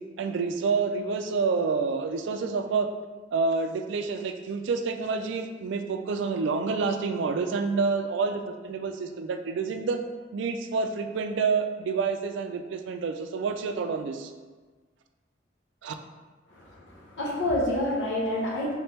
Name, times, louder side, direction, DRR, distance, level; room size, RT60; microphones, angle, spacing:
voice 1, 0.2-2.9 3.3-10.0 10.3-14.3 15.8-15.9, right 4 dB, 70° right, 6 dB, 0.3 m, -28 dB
voice 2, 16.5-18.7, left 1 dB, 80° left, -3 dB, 0.9 m, -28 dB
3.2 x 3.1 x 3.3 m, 1.4 s
head